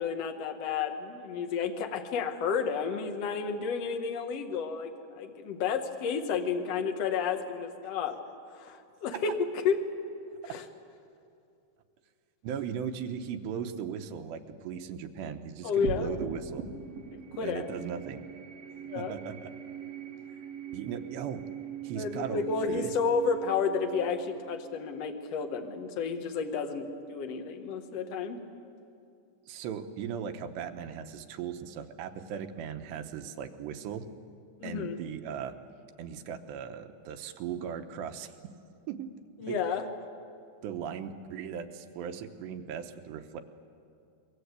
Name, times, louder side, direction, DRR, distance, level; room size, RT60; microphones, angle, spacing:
voice 1, 0.0-8.2 8.5-9.8 10.4-10.6 15.6-16.1 17.1-17.7 18.9-19.2 22.0-28.4 34.6-35.0 39.4-39.9, left 5 dB, 55° left, 5 dB, 1.9 m, -31 dB
voice 2, 12.4-16.7 17.4-18.2 19.0-19.5 20.7-21.4 21.8-22.9 29.5-34.1 34.6-35.6 36.0-38.5 38.9-39.1 39.5-39.6 40.6-43.4, right 8 dB, 80° right, 6 dB, 3.2 m, -38 dB
sound 1, 15.8-26.5, right 7 dB, 50° right, 2.2 m, -42 dB
27.5 x 23.0 x 8.2 m, 2.5 s
omnidirectional pair, 5.0 m